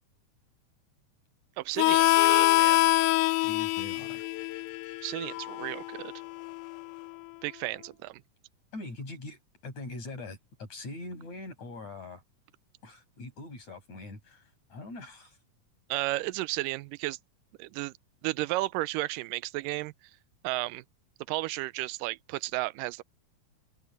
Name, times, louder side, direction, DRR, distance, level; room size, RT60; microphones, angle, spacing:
voice 1, 1.6-2.8 5.0-6.1 7.4-8.2 15.9-17.2 17.6-17.9 18.2-19.9 20.4-20.8 21.3-23.0, right 19 dB, 90° right, 2.2 m, -33 dB
Harmonica, 1.8-7.0, left 19 dB, 80° left, 2.0 m, -25 dB
voice 2, 3.4-4.3 8.7-12.2 12.8-15.4, left 2 dB, 60° left, 7.5 m, -42 dB
open air
omnidirectional pair, 3.8 m